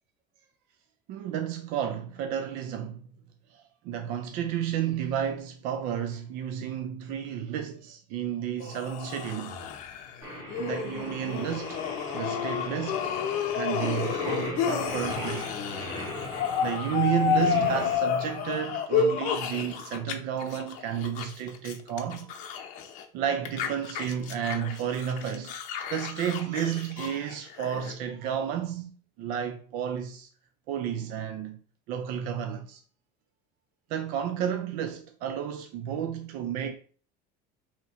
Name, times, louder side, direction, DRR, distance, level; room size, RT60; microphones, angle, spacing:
voice 1, 1.1-3.1 3.5-9.6 10.6-11.8 12.1-13.1 13.5-15.5 16.6-22.3 23.1-25.5 25.9-28.9 29.2-30.3 30.7-31.6 31.9-32.8 33.9-36.8, right 9 dB, 60° right, 0.4 m, -32 dB
sound 1, 8.6-20.1 20.4-23.1 23.5-27.9, left 7 dB, 50° left, 0.6 m, -31 dB
Singing, 10.2-18.0, left 1 dB, 20° right, 2.0 m, -39 dB
3.5 x 2.9 x 4.1 m
cardioid pair, 175°, 17 cm